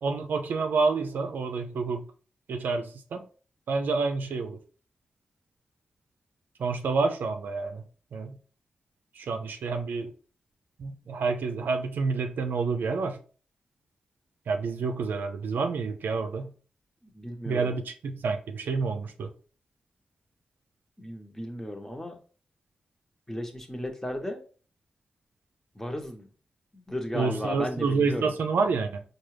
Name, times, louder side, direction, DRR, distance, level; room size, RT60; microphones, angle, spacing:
voice 1, 0.0-2.1 2.5-3.3 3.7-4.6 6.6-7.8 8.1-8.4 9.2-10.1 10.8-13.2 14.5-16.5 17.4-19.3 27.1-29.0, right 4 dB, 80° right, 0.4 m, -28 dB
voice 2, 17.0-17.7 21.0-22.2 23.3-24.4 25.7-26.3 26.7-28.3, left 1 dB, 10° left, 1.0 m, -35 dB
4.6 x 2.3 x 3.2 m
supercardioid pair, 40°, 3 cm